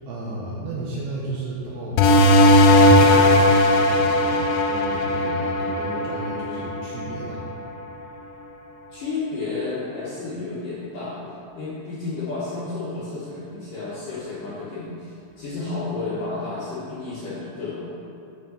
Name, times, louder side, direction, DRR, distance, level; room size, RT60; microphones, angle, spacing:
voice 1, 0.0-7.5, right 2 dB, 75° right, -5 dB, 2.8 m, -33 dB
sound 1, 2.0-7.2, left 1 dB, 90° left, 3.2 m, -17 dB
voice 2, 8.9-11.2 11.5-18.0, left 3 dB, 65° left, -10 dB, 2.2 m, -31 dB
8.1 x 5.4 x 7.1 m, 2.7 s
omnidirectional pair, 5.7 m